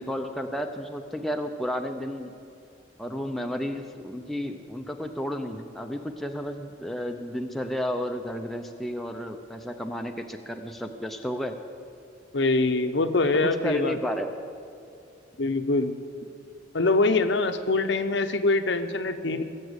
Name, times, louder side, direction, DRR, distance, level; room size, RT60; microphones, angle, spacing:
voice 1, 0.0-2.3 3.0-11.5 13.6-14.3, equal, ahead, 4 dB, 0.6 m, -32 dB
voice 2, 12.3-14.0 15.4-16.0 16.7-19.4, left 3 dB, 65° left, 9 dB, 0.8 m, -24 dB
18.5 x 7.5 x 8.1 m, 2.5 s
head